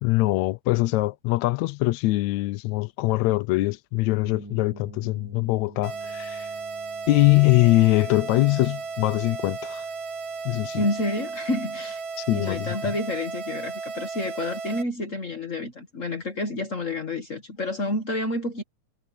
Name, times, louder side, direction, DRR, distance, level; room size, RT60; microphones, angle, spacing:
voice 1, 0.0-6.5 7.1-9.8 10.4-10.8 12.2-12.7, left 19 dB, 75° left, 1.7 m, -22 dB
sound 1, 4.2-12.0, right 2 dB, 15° right, 0.7 m, -49 dB
sound 2, 5.8-14.8, right 4 dB, 50° right, 2.7 m, -35 dB
voice 2, 10.8-12.0 12.3-18.6, left 2 dB, 50° left, 0.9 m, -29 dB
omnidirectional pair, 3.7 m